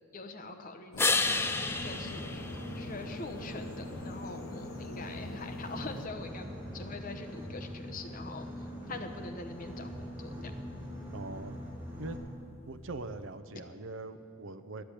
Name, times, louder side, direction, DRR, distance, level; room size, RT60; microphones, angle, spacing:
voice 1, 0.1-1.2 1.8-2.4 2.7-6.5 6.7-8.5 8.9-10.5, left 3 dB, 40° left, 7 dB, 0.8 m, -43 dB
sound 1, 0.9-6.1, left 2 dB, 75° left, 0.8 m, -45 dB
sound 2, 1.0-3.5 9.3-13.3, left 3 dB, 10° left, 0.4 m, -35 dB
Boat Water vehicle, 1.2-12.2, equal, 10° right, 2.2 m, -43 dB
voice 2, 11.1-11.6 12.0-12.2 12.7-14.8, right 2 dB, 65° right, 11 dB, 0.6 m, -41 dB
10.5 x 10.0 x 8.2 m, 2.5 s
head